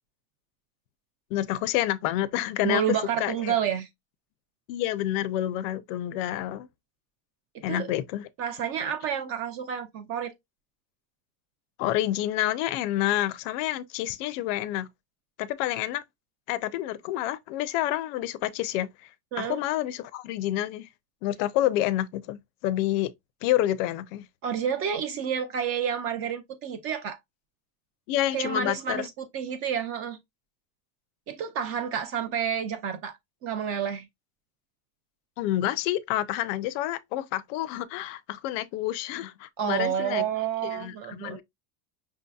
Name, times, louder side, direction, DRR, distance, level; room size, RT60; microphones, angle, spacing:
voice 1, 1.3-2.8 3.2-3.5 4.7-6.7 7.6-8.3 11.8-14.9 15.4-16.0 16.5-19.1 19.4-20.9 21.2-23.1 23.4-24.3 28.1-29.1 35.4-40.2 40.6-41.4, left 14 dB, 60° left, 0.5 m, -28 dB
voice 2, 2.6-3.9 7.7-7.9 8.4-10.3 19.3-19.6 24.4-27.2 28.3-30.2 31.3-34.1 39.6-41.4, right 8 dB, 35° right, 0.4 m, -29 dB
5.6 x 2.7 x 2.3 m
cardioid pair, 160°, 45 cm